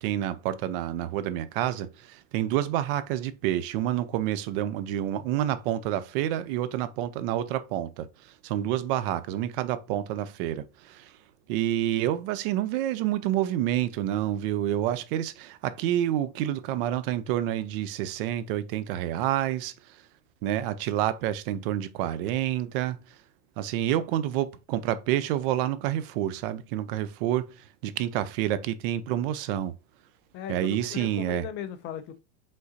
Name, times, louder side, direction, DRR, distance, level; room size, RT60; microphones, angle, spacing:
voice 1, 0.0-8.1 8.4-11.1 11.5-19.7 20.4-23.0 23.6-27.5 27.8-29.7 30.5-31.4, right 12 dB, 50° right, 0.5 m, -28 dB
voice 2, 30.3-32.2, left 10 dB, 35° left, 0.4 m, -37 dB
5.1 x 3.7 x 2.6 m
supercardioid pair, 130°, 35 cm